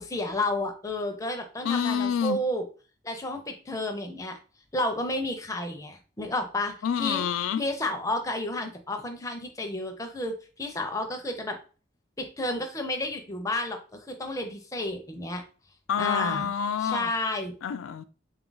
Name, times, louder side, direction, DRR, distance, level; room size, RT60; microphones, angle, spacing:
voice 1, 0.0-2.6 3.0-4.4 4.7-7.2 7.6-11.6 12.2-15.4 16.0-16.5 16.8-17.5, left 1 dB, 15° left, 0.5 m, -31 dB
voice 2, 1.6-2.4 6.8-7.6 15.9-17.1 17.6-18.0, left 8 dB, 80° left, 0.3 m, -27 dB
3.7 x 2.4 x 3.8 m
head